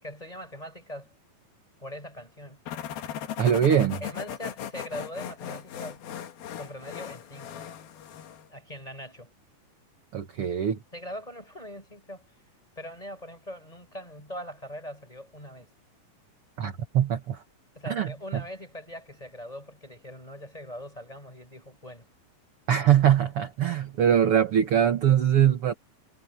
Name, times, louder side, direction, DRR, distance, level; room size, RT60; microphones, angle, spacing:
voice 1, 0.0-1.1 1.8-2.6 4.0-6.0 6.6-7.6 8.5-9.3 10.9-12.3 12.7-15.7 17.7-22.1 24.2-24.3, equal, 10° left, 5.0 m, -41 dB
sound 1, 2.7-8.5, left 9 dB, 80° left, 3.7 m, -38 dB
voice 2, 3.4-4.0 10.1-10.8 16.6-17.4 17.9-18.1 22.7-25.7, right 9 dB, 55° right, 1.7 m, -22 dB
omnidirectional pair, 4.3 m